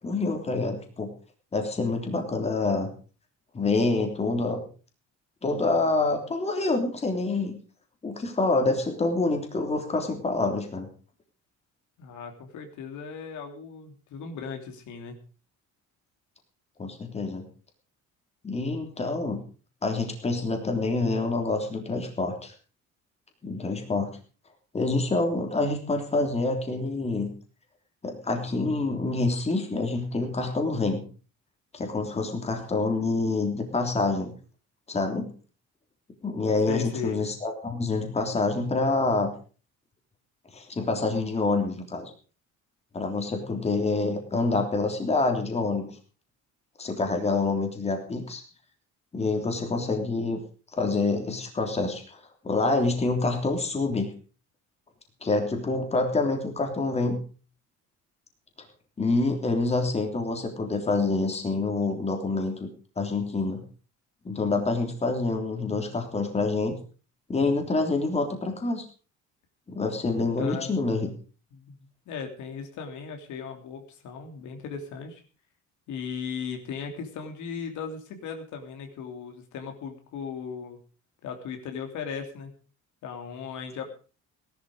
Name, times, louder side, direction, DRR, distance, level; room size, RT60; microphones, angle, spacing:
voice 1, 0.0-1.1 1.5-2.9 3.5-4.6 5.4-7.6 8.0-10.9 16.8-17.4 18.4-19.4 19.8-22.5 23.4-24.2 24.7-27.3 28.0-31.0 31.7-34.3 34.9-35.3 36.2-39.3 40.5-42.1 42.9-45.9 46.8-48.4 49.1-50.4 50.8-54.1 55.2-57.2 59.0-62.7 63.0-63.6 64.2-66.8 67.3-68.8 69.7-71.1, left 3 dB, 20° left, 3 dB, 3.4 m, -27 dB
voice 2, 12.0-15.2 36.7-37.2 70.4-70.7 71.5-71.8 72.1-75.2 75.9-80.8 81.2-82.5 83.0-83.9, left 6 dB, 75° left, 4 dB, 3.3 m, -37 dB
18.0 x 11.5 x 5.0 m, 0.38 s
cardioid pair, 160°, 30 cm